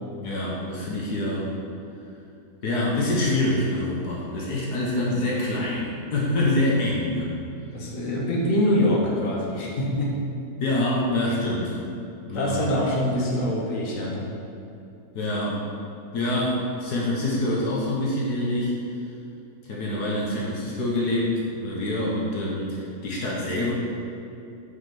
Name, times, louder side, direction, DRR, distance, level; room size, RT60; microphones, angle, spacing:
voice 1, 0.2-1.5 2.6-7.3 10.6-11.8 12.2-12.7 15.1-15.6 16.1-18.7 19.7-23.7, left 1 dB, 75° left, -4 dB, 1.8 m, -26 dB
voice 2, 7.7-10.1 12.3-14.3, left 1 dB, 55° left, -4 dB, 1.8 m, -24 dB
6.9 x 5.7 x 7.0 m, 2.7 s
omnidirectional pair, 1.7 m